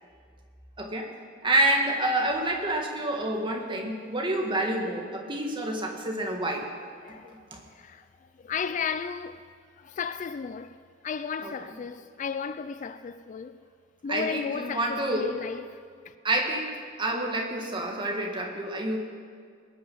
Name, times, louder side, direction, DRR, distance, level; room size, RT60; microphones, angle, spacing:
voice 1, 0.8-1.1 1.4-6.7 7.3-7.6 11.4-11.5 14.1-15.3 16.2-16.7 17.0-19.0, right 1 dB, 25° right, 1.9 m, -28 dB
voice 2, 7.0-7.4 7.7-9.4 9.8-10.8 11.0-13.6 14.0-16.1, left 6 dB, 40° left, 0.4 m, -34 dB
20.5 x 9.4 x 5.5 m
head